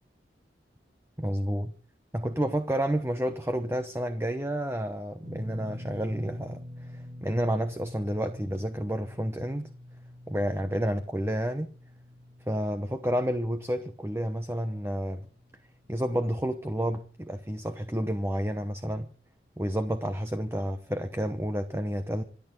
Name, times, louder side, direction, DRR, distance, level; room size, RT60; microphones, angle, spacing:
voice 1, 1.2-1.7 2.1-9.7 10.3-11.7 12.5-15.3 15.9-19.1 19.6-22.2, equal, 15° right, 8 dB, 1.0 m, -30 dB
sound 1, 5.2-17.5 17.7-18.0 19.6-19.7, left 1 dB, 45° right, 2.0 m, -47 dB
27.0 x 9.1 x 3.9 m, 0.39 s
head